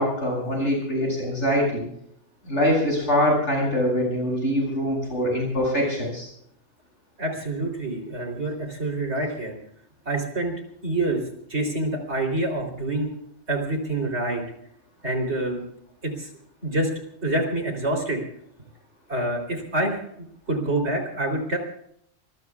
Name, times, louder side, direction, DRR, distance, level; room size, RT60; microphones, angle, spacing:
voice 1, 0.0-1.8 2.4-6.3, equal, 70° left, -1 dB, 8.0 m, -23 dB
voice 2, 7.2-9.5 10.1-10.6 10.8-11.2 11.5-13.1 13.5-14.4 15.0-15.6 16.0-16.3 16.6-16.9 17.2-18.2 19.1-20.0 20.5-21.6, right 2 dB, 60° right, 2 dB, 3.9 m, -26 dB
26.0 x 21.5 x 2.4 m, 0.70 s
omnidirectional pair, 1.3 m